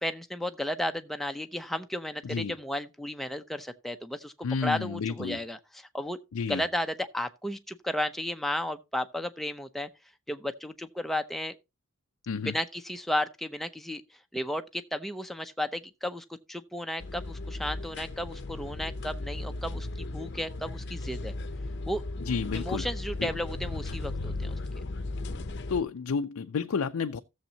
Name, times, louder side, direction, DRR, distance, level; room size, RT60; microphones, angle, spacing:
voice 1, 0.0-4.3 4.6-6.2 6.5-9.9 10.3-11.6 12.4-14.0 14.3-21.3 21.8-22.0 22.5-24.6, left 1 dB, ahead, 0.6 m, -33 dB
voice 2, 2.2-2.5 4.4-5.4 6.3-6.6 12.3-12.6 22.2-22.9 23.2-23.3 25.7-27.2, left 5 dB, 85° left, 0.5 m, -31 dB
sound 1, 17.0-25.8, left 2 dB, 55° left, 0.7 m, -36 dB
16.0 x 7.2 x 2.8 m
head